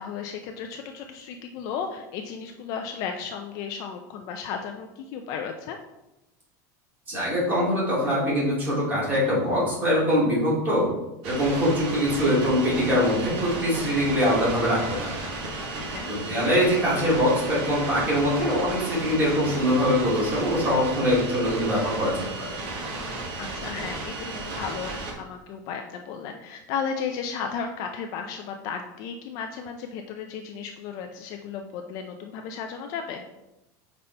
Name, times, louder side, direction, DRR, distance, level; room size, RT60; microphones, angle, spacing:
voice 1, 0.0-5.8 15.9-16.1 23.4-33.2, left 6 dB, 40° left, 4 dB, 0.4 m, -34 dB
voice 2, 7.1-10.9 11.2-15.2 16.1-22.6, equal, 20° right, -6 dB, 2.2 m, -23 dB
sound 1, 11.2-25.1, right 2 dB, 50° right, 1.3 m, -34 dB
5.3 x 4.0 x 4.4 m, 0.93 s
supercardioid pair, 175°, 10 cm